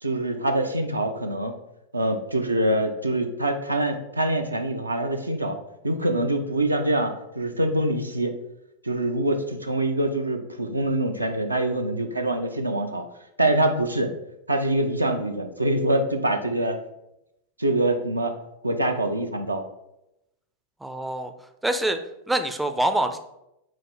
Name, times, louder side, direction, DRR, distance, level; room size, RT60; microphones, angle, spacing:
voice 1, 0.0-1.5 1.9-5.6 5.8-8.4 8.8-13.0 13.4-14.1 14.5-16.8 17.6-18.3 18.6-19.6, right 1 dB, 85° right, 5 dB, 0.4 m, -24 dB
voice 2, 20.8-21.3 21.6-22.0 22.3-23.2, right 1 dB, 5° right, 8 dB, 0.3 m, -25 dB
5.6 x 2.5 x 3.0 m, 0.85 s
figure-of-eight pair, 90°, 0 cm